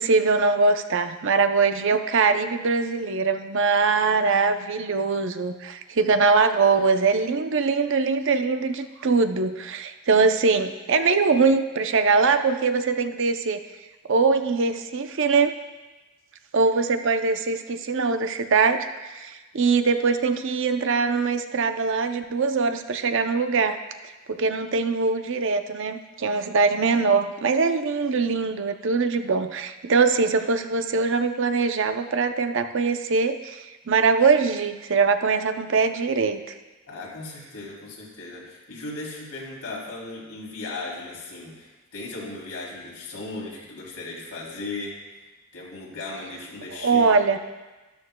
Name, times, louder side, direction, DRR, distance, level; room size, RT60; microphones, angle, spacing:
voice 1, 0.0-13.6 14.1-15.5 16.5-18.9 19.1-23.8 24.3-36.4 46.8-47.4, right 4 dB, 55° right, 8 dB, 0.6 m, -22 dB
voice 2, 36.9-45.0 45.5-47.2, left 2 dB, 90° left, -3 dB, 3.2 m, -37 dB
13.0 x 13.0 x 2.3 m, 1.2 s
head